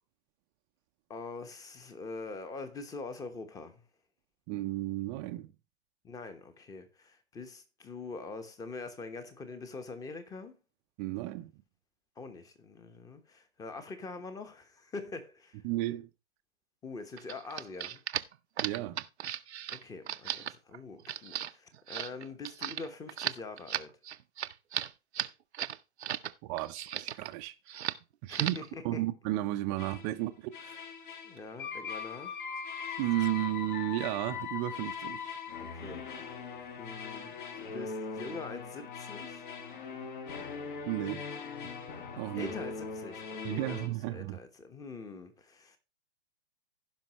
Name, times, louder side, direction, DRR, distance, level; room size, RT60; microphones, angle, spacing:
voice 1, 1.1-3.8 6.0-10.6 12.2-15.6 16.8-18.0 19.7-23.9 28.3-29.0 31.2-32.4 35.6-36.4 36.8-39.4 42.3-45.8, left 3 dB, 10° left, 1.0 m, -44 dB
voice 2, 4.5-5.5 11.0-11.5 15.6-16.1 18.6-19.0 26.4-27.9 28.2-28.6 28.8-30.8 33.0-35.4 40.9-41.3 42.2-42.5 43.4-44.4, right 16 dB, 20° right, 0.6 m, -33 dB
sound 1, 17.2-26.3 26.6-27.3 27.7-28.0 28.3-28.7, right 10 dB, 80° right, 0.7 m, -36 dB
sound 2, 29.8-30.1 30.5-43.9, left 6 dB, 50° left, 1.7 m, -41 dB
16.0 x 5.5 x 3.0 m
hypercardioid pair, 140°, 32 cm